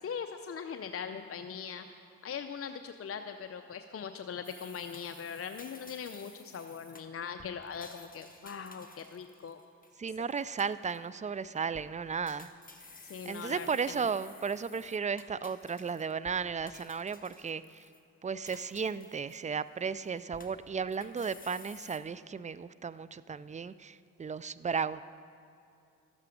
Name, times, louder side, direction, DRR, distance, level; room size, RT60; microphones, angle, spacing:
voice 1, 0.0-1.9 2.2-9.6 13.0-14.1, left 6 dB, 40° left, 7 dB, 0.5 m, -41 dB
sound 1, 4.4-10.0 10.3-11.1 11.6-11.9 12.3-16.4 16.7-18.0 18.5-19.7 20.0-22.0, left 3 dB, 25° left, 1.2 m, -54 dB
voice 2, 10.0-12.5 13.2-17.9 18.2-25.0, right 6 dB, 20° right, 17 dB, 0.3 m, -35 dB
12.0 x 8.2 x 5.1 m, 2.5 s
supercardioid pair, 40°, 35 cm